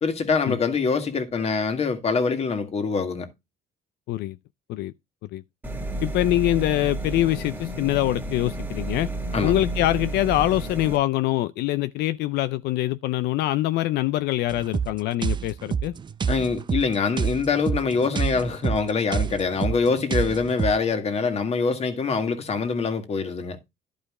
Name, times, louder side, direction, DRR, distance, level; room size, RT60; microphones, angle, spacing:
voice 1, 0.0-3.3 9.3-9.6 16.3-23.6, left 5 dB, 40° left, 1.8 m, -24 dB
sound 1, 5.6-11.0, right 2 dB, 10° right, 1.9 m, -31 dB
voice 2, 6.0-9.1 9.4-15.9, left 15 dB, 75° left, 0.5 m, -24 dB
sound 2, 14.5-20.8, right 7 dB, 25° right, 0.5 m, -28 dB
11.5 x 5.0 x 3.6 m
cardioid pair, 110°, 17 cm